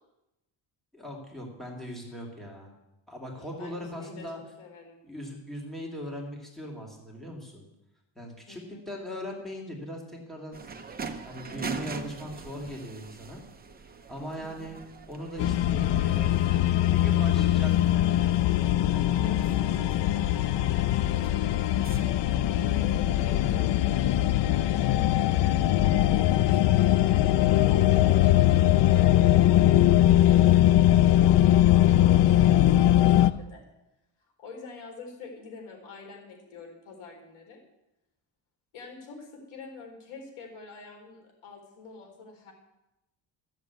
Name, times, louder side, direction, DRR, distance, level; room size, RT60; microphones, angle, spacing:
voice 1, 0.9-2.7 3.1-4.4 5.0-7.7 8.2-10.6 11.2-13.4 14.1-14.8 15.1-16.4 16.8-18.0, equal, ahead, -2 dB, 2.5 m, -39 dB
voice 2, 3.3-4.2 4.6-5.0 8.5-8.8 14.3-14.7 19.1-22.0 22.5-28.6 28.9-33.6 34.4-37.6 38.7-42.5, left 3 dB, 90° left, 2 dB, 4.2 m, -46 dB
sound 1, 10.5-23.7, right 5 dB, 20° right, 0.8 m, -44 dB
sound 2, 15.4-33.3, left 13 dB, 65° left, 0.6 m, -21 dB
14.0 x 7.3 x 8.2 m, 0.92 s
cardioid pair, 165°, 47 cm